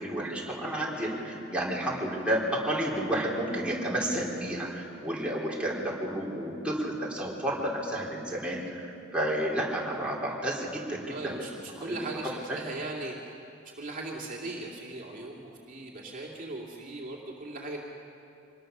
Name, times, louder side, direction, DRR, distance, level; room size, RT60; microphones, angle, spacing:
voice 1, 0.0-12.0 12.5-12.6, right 1 dB, 5° right, -5 dB, 4.1 m, -31 dB
voice 2, 11.1-13.1 13.8-17.8, right 2 dB, 45° right, -2 dB, 2.5 m, -38 dB
25.5 x 20.5 x 6.7 m, 2.7 s
head